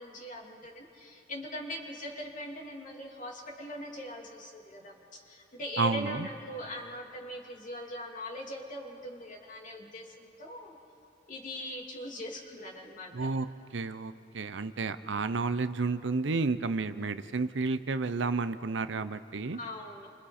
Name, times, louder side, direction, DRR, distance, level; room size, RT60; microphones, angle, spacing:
voice 1, 0.0-10.8 11.3-13.3 19.6-20.1, left 1 dB, 45° left, 0 dB, 2.7 m, -41 dB
voice 2, 5.8-6.3 13.1-13.5 13.7-19.6, right 4 dB, 70° right, 12 dB, 0.7 m, -31 dB
29.5 x 25.5 x 4.3 m, 2.8 s
head